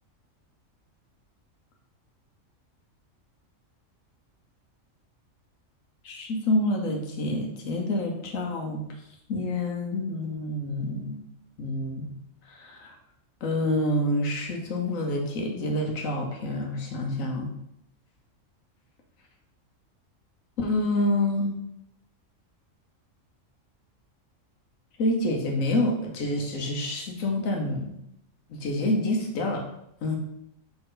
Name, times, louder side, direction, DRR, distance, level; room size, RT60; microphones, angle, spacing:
voice 1, 6.0-8.8 9.3-11.2 11.6-12.1 12.5-12.9 13.4-17.5 20.6-21.6 25.0-27.9 28.5-29.6 30.0-30.2, left 1 dB, 85° left, 1 dB, 1.3 m, -27 dB
5.7 x 4.4 x 3.8 m, 0.75 s
omnidirectional pair, 1.4 m